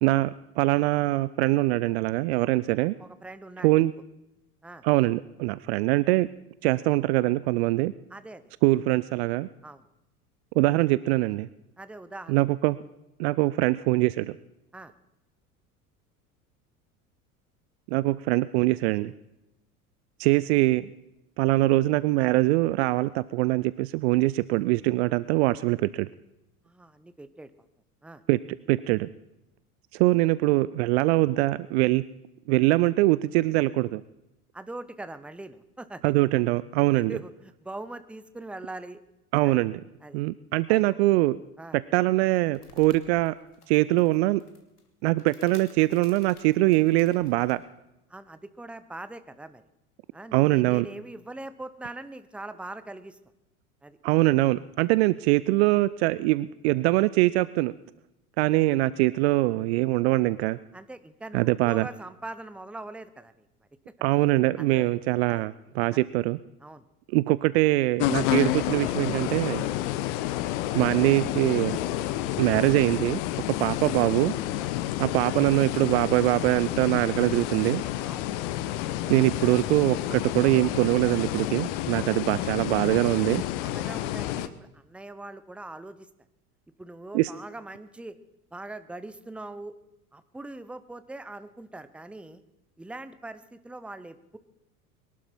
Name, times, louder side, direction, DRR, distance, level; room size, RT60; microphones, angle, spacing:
voice 1, 0.0-2.9 3.6-3.9 4.8-6.3 6.6-7.9 8.6-9.5 10.6-11.5 12.3-12.8 13.2-14.4 17.9-19.1 20.2-20.9 21.4-26.1 28.3-28.4 28.7-29.1 29.9-32.0 32.5-34.0 36.0-37.2 39.3-39.8 40.1-41.4 41.7-43.3 43.7-44.4 45.0-47.6 50.3-50.9 54.0-57.7 58.4-60.6 61.3-61.9 64.0-66.4 67.1-69.7 70.7-71.8 72.4-73.2 73.5-74.3 75.0-77.8 79.1-83.4 87.1-87.3, right 19 dB, 45° right, 18 dB, 0.5 m, -23 dB
voice 2, 3.0-3.9 4.6-4.8 8.1-8.5 9.6-9.8 11.8-12.4 14.7-14.9 26.6-27.5 28.0-28.2 34.5-36.1 36.8-39.0 39.4-39.6 40.0-40.2 40.7-40.8 41.6-41.8 48.1-49.6 50.1-53.2 53.8-54.0 60.7-63.5 64.6-64.9 65.3-65.5 65.9-66.0 66.6-66.8 74.6-74.7 78.1-78.3 78.7-78.8 79.4-79.5 81.9-82.0 83.5-86.1 86.8-88.2 88.5-89.7 90.1-92.4 92.8-94.4, right 2 dB, 5° right, 13 dB, 0.7 m, -42 dB
sound 1, 42.2-47.6, left 4 dB, 85° left, 1.8 m, -55 dB
sound 2, 68.0-84.5, left 14 dB, 50° left, 1.0 m, -30 dB
22.0 x 12.0 x 4.5 m, 0.91 s
figure-of-eight pair, 75°, 45 cm